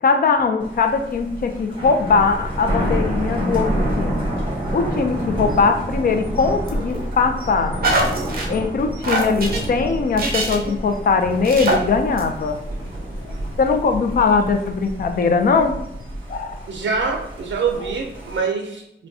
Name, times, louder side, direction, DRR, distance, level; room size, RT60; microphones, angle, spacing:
voice 1, 0.0-4.3 4.7-7.8 8.5-12.6 13.6-15.7 16.3-16.6, left 4 dB, 50° left, 6 dB, 0.4 m, -20 dB
Thunder, 0.6-18.4, equal, 25° right, 1.2 m, -28 dB
sound 1, 6.7-7.1 7.8-8.5 9.0-9.6 10.2-10.7 11.2-11.8 12.2-12.3, right 2 dB, 50° right, 0.8 m, -23 dB
voice 2, 16.7-19.1, right 5 dB, 75° right, 2 dB, 0.5 m, -25 dB
5.9 x 2.2 x 2.6 m, 0.83 s
wide cardioid pair, 170°, 20 cm